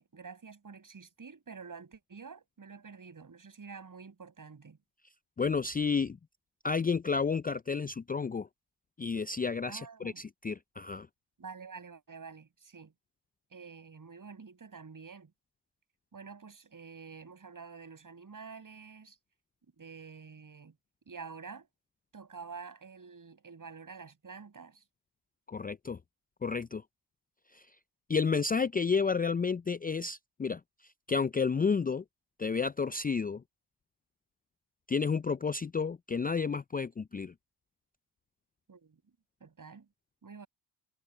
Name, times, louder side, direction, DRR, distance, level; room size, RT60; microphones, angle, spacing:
voice 1, 0.0-4.8 9.7-10.2 11.4-12.9 13.5-15.3 16.1-19.2 19.8-20.8 21.1-21.7 22.1-24.8 38.7-39.0 39.4-39.9 40.2-40.5, right 5 dB, 40° right, 7.0 m, -48 dB
voice 2, 5.4-6.2 6.6-8.5 9.0-11.1 25.5-26.0 26.4-26.8 27.5-27.6 28.1-30.6 31.1-32.0 32.4-33.4 34.9-37.3, left 5 dB, 20° left, 0.5 m, -31 dB
hypercardioid pair, 45°, 47 cm